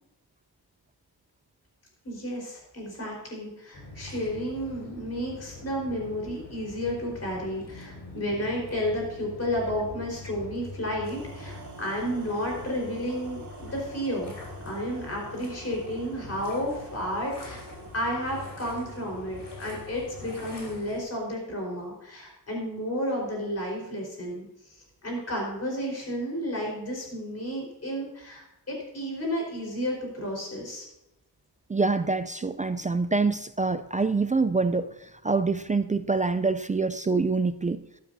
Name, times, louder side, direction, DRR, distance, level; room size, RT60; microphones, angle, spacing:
voice 1, 2.0-14.3 14.6-17.6 17.9-30.8, equal, 40° left, -1 dB, 4.4 m, -32 dB
sound 1, 3.7-21.0, left 3 dB, 85° left, 4.0 m, -44 dB
sound 2, 11.0-20.9, right 3 dB, 50° right, 4.4 m, -47 dB
voice 2, 31.7-37.8, right 3 dB, 20° right, 11 dB, 0.3 m, -26 dB
13.5 x 12.0 x 2.7 m, 0.89 s
wide cardioid pair, 110°, 39 cm